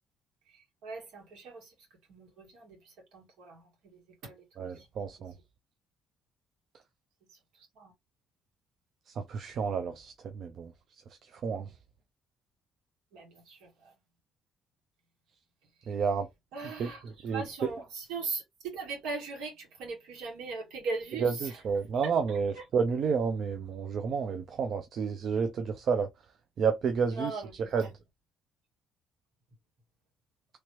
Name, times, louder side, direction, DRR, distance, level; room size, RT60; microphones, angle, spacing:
voice 1, 0.4-4.9 5.2-5.3 7.3-7.9 13.1-14.0 15.6-16.0 16.5-21.6 22.0-22.7 27.1-27.9, right 3 dB, 85° right, 2.0 m, -40 dB
voice 2, 4.6-5.3 9.1-10.7 11.2-11.7 15.9-16.3 16.8-16.9 17.2-17.4 21.2-26.1 26.6-27.3 27.7-27.8, right 6 dB, 60° right, 0.5 m, -30 dB
3.1 x 2.9 x 3.0 m
supercardioid pair, 80°, 0 cm